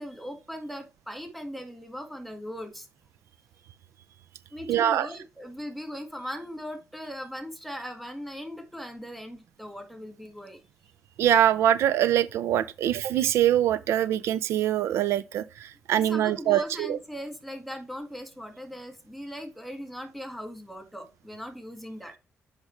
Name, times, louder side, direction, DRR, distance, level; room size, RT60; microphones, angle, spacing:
voice 1, 0.0-2.9 4.5-10.6 15.9-22.1, equal, ahead, 1.8 m, -39 dB
voice 2, 4.7-5.1 11.2-17.0, right 11 dB, 85° right, 0.5 m, -24 dB
8.1 x 5.0 x 3.2 m
cardioid pair, 100°, 4 cm